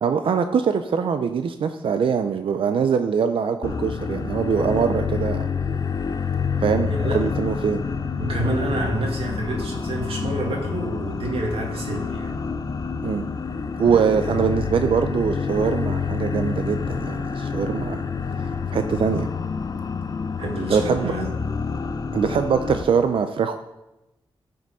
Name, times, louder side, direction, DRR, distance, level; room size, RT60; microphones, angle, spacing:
voice 1, 0.0-5.5 6.6-7.8 13.0-13.3 13.8-18.0 18.4-19.3 20.7-21.1 22.1-23.6, right 6 dB, 65° right, 8 dB, 0.5 m, -23 dB
sound 1, 3.6-22.8, left 5 dB, 40° left, 0.6 m, -28 dB
voice 2, 6.9-7.3 8.2-12.4 13.9-14.2 17.6-17.7 20.4-21.3, right 1 dB, 80° right, 0 dB, 2.2 m, -28 dB
14.5 x 5.2 x 5.4 m, 0.96 s
wide cardioid pair, 165°, 10 cm